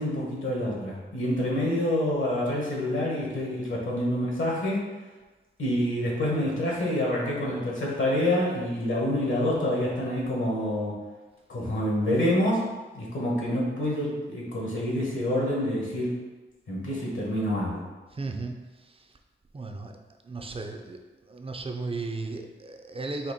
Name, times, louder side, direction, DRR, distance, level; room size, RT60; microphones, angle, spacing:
voice 1, 0.0-4.9 5.6-11.0 11.5-12.6 12.9-16.2 16.7-17.8, left 1 dB, 70° left, -4 dB, 1.5 m, -27 dB
voice 2, 18.1-18.5 19.5-19.9 20.2-21.0 21.3-23.3, right 3 dB, 25° right, 4 dB, 0.5 m, -35 dB
4.3 x 2.9 x 4.1 m, 1.2 s
wide cardioid pair, 90°, 21 cm